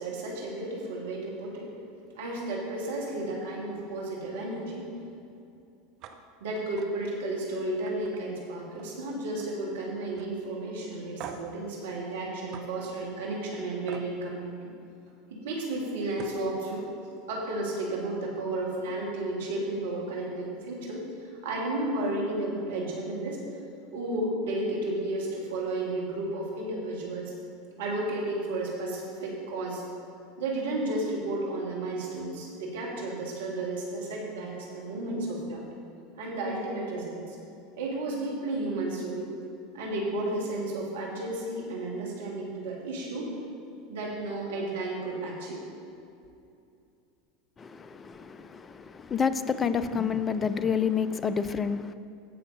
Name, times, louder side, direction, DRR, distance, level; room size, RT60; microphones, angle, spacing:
voice 1, 0.0-1.7 2.2-4.9 6.4-14.7 15.3-16.8 17.3-23.4 23.9-27.3 27.8-29.8 30.4-35.6 36.2-37.4 37.8-39.3 39.7-43.3 43.9-45.6, right 2 dB, 70° right, -3 dB, 1.9 m, -33 dB
sound 1, 6.0-6.2 6.5-6.9 7.3-7.4 7.9-9.0 9.3-9.7 10.2-10.3 11.2-11.6 12.5-12.7 13.9-14.1 15.7-15.8 16.1-16.4, right 8 dB, 50° right, 0.8 m, -44 dB
voice 2, 47.6-51.9, left 6 dB, 25° left, 13 dB, 0.5 m, -29 dB
15.5 x 5.7 x 3.9 m, 2.6 s
hypercardioid pair, 80°, 0 cm